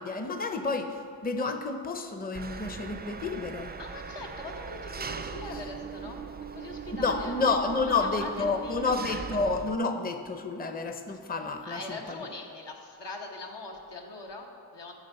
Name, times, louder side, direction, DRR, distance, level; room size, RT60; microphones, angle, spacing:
voice 1, 0.0-3.8 7.0-11.8, left 3 dB, 20° left, 6 dB, 0.6 m, -30 dB
Engine, 2.3-9.8, right 5 dB, 25° right, 0.3 m, -40 dB
voice 2, 3.8-6.2 6.5-7.3 7.7-9.0 11.6-14.9, left 2 dB, 80° left, 1 dB, 1.1 m, -42 dB
10.5 x 3.5 x 6.9 m, 2.4 s
cardioid pair, 45°, 41 cm